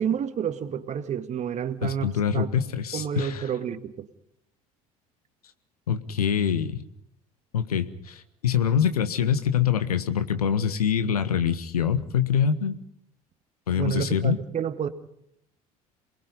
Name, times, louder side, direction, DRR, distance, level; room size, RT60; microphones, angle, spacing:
voice 1, 0.0-2.5 2.9-4.1 13.7-14.9, right 8 dB, 35° right, 1.9 m, -29 dB
voice 2, 1.8-3.5 5.9-6.8 7.5-12.8 13.7-14.4, left 8 dB, 75° left, 1.5 m, -25 dB
28.0 x 20.5 x 5.6 m
figure-of-eight pair, 65°, 19 cm